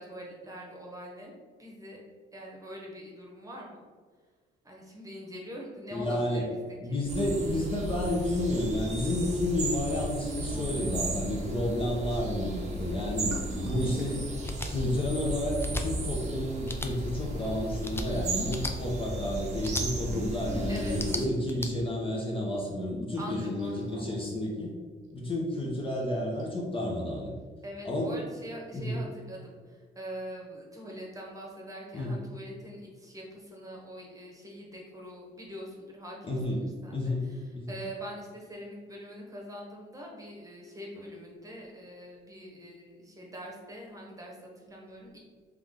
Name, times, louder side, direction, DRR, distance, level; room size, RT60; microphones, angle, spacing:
voice 1, 0.0-1.3 1.6-2.0 2.3-3.8 4.6-7.0 10.6-10.9 13.9-14.3 20.7-21.0 23.2-23.9 27.6-45.2, equal, 15° right, -2 dB, 1.1 m, -43 dB
voice 2, 5.9-6.5 6.8-13.3 13.6-14.3 14.7-24.7 25.1-27.3 27.8-28.2 28.7-29.0 31.9-32.2 36.2-37.2 37.5-37.7, left 1 dB, 25° left, -3 dB, 0.9 m, -31 dB
sound 1, 7.1-21.3, right 1 dB, 35° right, 0.8 m, -35 dB
sound 2, 8.4-9.0 9.2-9.3 9.6-9.8 10.3-10.4 12.9-15.5 17.1-17.8 18.6-18.7 18.9-19.0 19.6-21.4 23.5-24.4 25.7-25.8 26.4-26.5, right 1 dB, 85° right, 1.0 m, -39 dB
sound 3, 14.4-14.7 15.6-15.8 16.6-16.9 17.8-18.1 18.5-18.7 19.6-19.9 20.9-21.7, left 2 dB, 10° left, 0.4 m, -35 dB
3.6 x 3.2 x 3.6 m, 1.5 s
cardioid pair, 90°, 20 cm